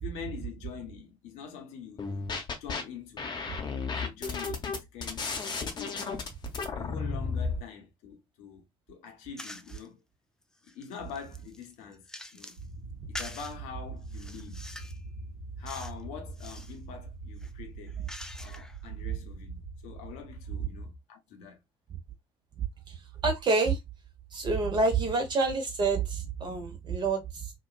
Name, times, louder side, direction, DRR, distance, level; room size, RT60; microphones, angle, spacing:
voice 1, 0.0-3.3 3.6-5.3 5.6-6.3 6.7-10.0 10.7-12.6 13.1-14.6 15.6-18.0 18.4-21.6, left 7 dB, 60° left, 0.8 m, -44 dB
sound 1, 2.0-2.8 3.2-7.6, left 5 dB, 35° left, 0.8 m, -33 dB
sound 2, 9.4-9.9 10.4-12.7 13.1-13.6 14.1-15.0 15.7-16.0 16.3-16.8 17.3-18.8, left 1 dB, 5° left, 0.3 m, -45 dB
sound 3, 12.5-20.9, right 3 dB, 70° right, 1.1 m, -43 dB
voice 2, 23.2-23.8 24.3-27.5, right 3 dB, 35° right, 1.0 m, -27 dB
2.9 x 2.3 x 2.3 m
figure-of-eight pair, 50°, 13 cm